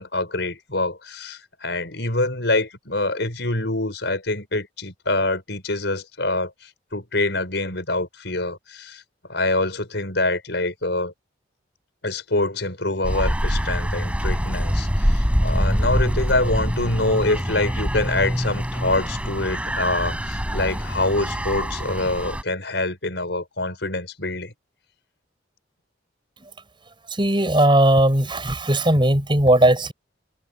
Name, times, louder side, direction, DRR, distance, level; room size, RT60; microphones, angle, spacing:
voice 1, 0.0-9.0 9.3-11.1 12.0-24.5, left 2 dB, 65° left, 6.7 m, -25 dB
sound 1, 13.0-22.4, equal, 5° right, 6.8 m, -24 dB
voice 2, 27.1-29.9, right 1 dB, 25° right, 7.1 m, -18 dB
head